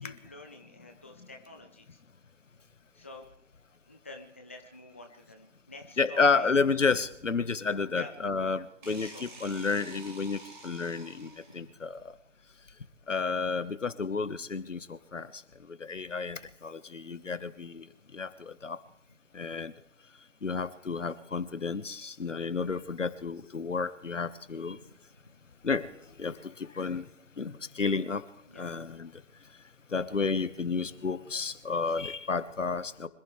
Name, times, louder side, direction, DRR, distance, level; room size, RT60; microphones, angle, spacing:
voice 1, 0.0-2.0 2.9-3.3 3.9-6.5 7.9-8.1 8.8-9.2 11.5-11.7 20.9-21.0 24.7-24.9 28.5-28.7 30.2-30.4 30.7-31.1, left 2 dB, 10° left, 3 dB, 0.5 m, -48 dB
voice 2, 6.0-11.3 11.5-12.0 13.1-15.3 15.8-17.8 18.1-18.3 18.6-18.8 19.3-19.7 20.4-24.8 25.6-25.9 26.2-26.3 26.8-27.0 27.4-28.2 28.6-29.1 29.9-33.1, left 4 dB, 80° left, 13 dB, 1.4 m, -31 dB
sound 1, 8.8-11.7, right 2 dB, 40° right, 5.5 m, -49 dB
25.5 x 15.0 x 3.3 m, 0.71 s
figure-of-eight pair, 150°, 37 cm